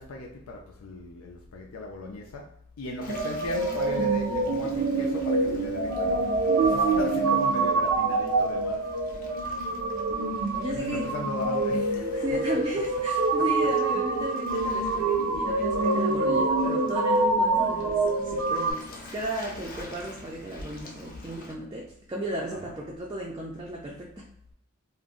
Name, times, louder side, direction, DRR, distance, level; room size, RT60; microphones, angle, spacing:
voice 1, 0.0-2.5 2.8-8.9 10.7-12.6, left 2 dB, 90° left, 0 dB, 0.4 m, -37 dB
Waves surf, 3.0-21.5, left 1 dB, 40° left, 0.5 m, -46 dB
sound 1, 3.1-18.7, right 3 dB, 75° right, 0.5 m, -26 dB
voice 2, 10.5-11.1 12.2-18.9 19.1-24.3, equal, 20° right, -3 dB, 0.4 m, -35 dB
2.5 x 2.0 x 3.7 m, 0.70 s
head